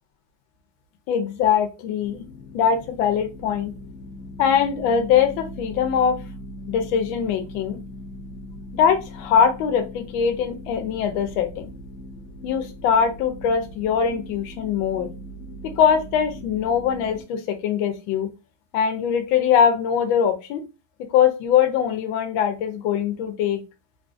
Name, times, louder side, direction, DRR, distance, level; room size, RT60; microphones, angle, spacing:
voice 1, 1.1-2.2 2.5-3.7 4.4-6.2 6.7-7.8 8.7-11.7 12.4-15.1 15.6-18.3 18.7-20.6 21.1-23.6, left 7 dB, 85° left, 6 dB, 1.3 m, -22 dB
sound 1, 2.0-17.2, left 1 dB, 60° left, 1.2 m, -40 dB
3.5 x 2.5 x 2.3 m, 0.28 s
omnidirectional pair, 2.1 m